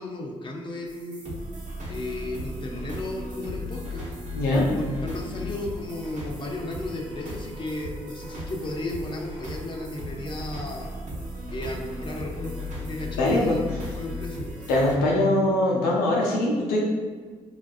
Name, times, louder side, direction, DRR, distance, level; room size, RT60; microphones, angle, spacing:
voice 1, 0.0-1.4 1.9-4.1 4.5-11.0 11.5-13.6 14.0-14.5, left 1 dB, 30° left, 1 dB, 0.6 m, -34 dB
sound 1, 0.9-15.0, left 1 dB, 50° right, 1.0 m, -36 dB
voice 2, 4.3-4.7 13.2-13.6 14.7-16.8, left 1 dB, 75° left, -3 dB, 0.6 m, -22 dB
4.1 x 2.3 x 2.3 m, 1.5 s
hypercardioid pair, 45°, 16 cm